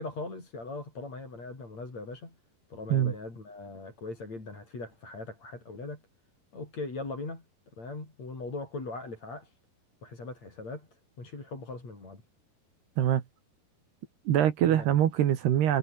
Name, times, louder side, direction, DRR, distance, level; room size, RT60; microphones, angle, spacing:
voice 1, 0.0-2.4 2.7-6.0 6.5-7.5 7.8-9.5 10.0-12.2 14.6-14.9, left 3 dB, 40° left, 8.7 m, -40 dB
voice 2, 14.3-15.8, right 11 dB, 75° right, 3.9 m, -24 dB
omnidirectional pair, 4.8 m